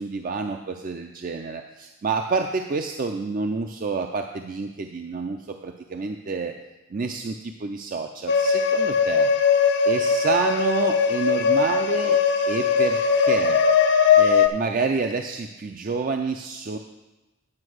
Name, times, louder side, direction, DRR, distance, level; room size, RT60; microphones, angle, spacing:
voice 1, 0.0-6.5 6.9-9.3 9.9-12.2 12.5-13.6 14.2-16.8, right 4 dB, 40° right, 5 dB, 0.4 m, -28 dB
sound 1, 8.3-14.5, left 6 dB, 55° left, 0.5 m, -20 dB
9.6 x 5.3 x 6.3 m, 1.1 s
head